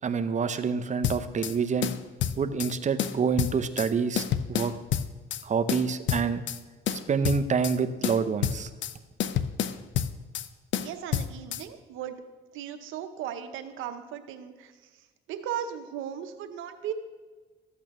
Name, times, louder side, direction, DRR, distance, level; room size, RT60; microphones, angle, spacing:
voice 1, 0.0-1.9 2.4-4.7 5.4-6.4 6.9-8.7, right 5 dB, 40° right, 10 dB, 0.6 m, -27 dB
sound 1, 1.0-1.5 1.8-2.7 3.0-3.9 4.2-5.4 5.7-6.6 6.9-7.8 8.0-8.9 9.2-10.5 10.7-11.6, left 9 dB, 70° left, 0.5 m, -29 dB
voice 2, 10.7-12.2 12.5-16.9, right 9 dB, 90° right, 8 dB, 0.8 m, -37 dB
13.5 x 8.4 x 3.1 m, 1.3 s
cardioid pair, 90°, 20 cm